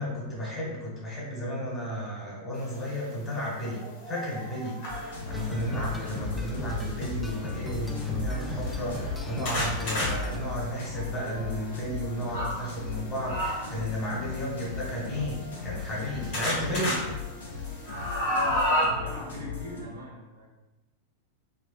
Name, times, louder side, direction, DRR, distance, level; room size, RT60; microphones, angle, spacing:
voice 1, 0.0-17.0, equal, 25° left, -4 dB, 1.3 m, -33 dB
sound 1, 2.9-3.0 3.5-5.5 6.5-6.9 7.5-7.6 7.9-8.0 8.6-12.6 13.3-13.8 14.8-16.0 16.3-17.0 17.4-18.9, equal, 50° left, 1.1 m, -32 dB
sound 2, 4.9-19.8, left 6 dB, 70° left, 0.7 m, -38 dB
sound 3, 5.3-10.4, equal, 5° left, 0.3 m, -36 dB
voice 2, 18.2-20.5, equal, 75° right, -3 dB, 0.8 m, -42 dB
3.3 x 2.4 x 2.4 m, 1.0 s
figure-of-eight pair, 90°, 0 cm